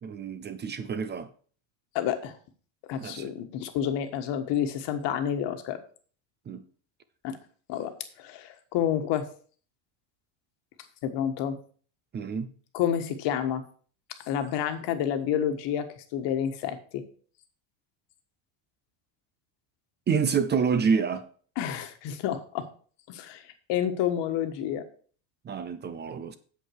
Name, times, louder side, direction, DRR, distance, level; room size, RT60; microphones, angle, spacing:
voice 1, 0.0-1.3 3.0-3.3 6.5-6.6 12.1-12.5 20.1-21.2 25.4-26.4, right 6 dB, 20° right, 0.5 m, -28 dB
voice 2, 1.9-2.3 2.9-5.8 7.2-7.4 7.7-7.9 8.2-9.3 11.0-11.6 12.7-13.6 14.3-15.9 16.1-17.0 21.6-22.7 23.1-23.4 23.7-24.8, left 9 dB, 55° left, 1.5 m, -29 dB
8.4 x 7.7 x 4.7 m
cardioid pair, 145°, 50 cm